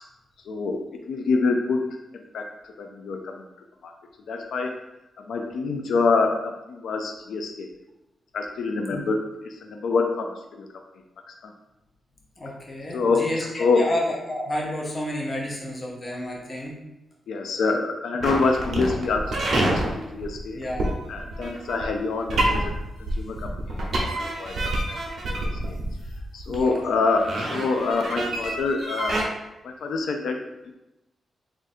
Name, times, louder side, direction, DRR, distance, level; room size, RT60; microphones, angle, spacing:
voice 1, 0.5-3.4 3.8-3.9 4.3-4.7 5.2-7.7 8.3-9.2 9.4-10.8 11.3-11.5 12.9-13.3 13.6-13.9 17.3-20.6 21.1-22.7 23.0-25.0 25.4-25.8 26.3-29.2 29.6-30.5, left 4 dB, 85° left, 3 dB, 0.4 m, -26 dB
voice 2, 12.4-16.7 20.5-20.9 26.5-26.8, left 1 dB, 25° left, -3 dB, 0.8 m, -30 dB
sound 1, 18.2-29.2, right 1 dB, 45° right, 0.8 m, -27 dB
3.6 x 2.5 x 4.1 m, 0.95 s
wide cardioid pair, 180°, 0 cm